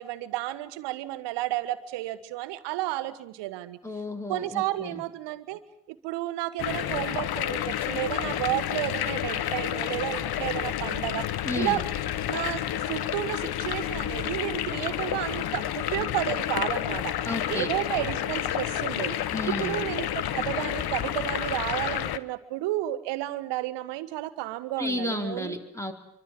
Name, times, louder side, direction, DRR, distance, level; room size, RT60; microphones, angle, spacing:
voice 1, 0.0-3.8 4.3-5.6 5.9-11.3 11.5-11.8 12.3-17.1 17.5-19.2 19.5-25.6, right 16 dB, 70° right, 14 dB, 1.6 m, -32 dB
voice 2, 3.8-5.0 11.4-11.8 17.3-17.7 19.3-19.8 24.8-25.9, left 2 dB, 5° left, 5 dB, 4.3 m, -32 dB
sound 1, 6.6-22.2, left 11 dB, 60° left, 1.3 m, -30 dB
27.0 x 24.0 x 7.7 m, 0.72 s
hypercardioid pair, 50°, 43 cm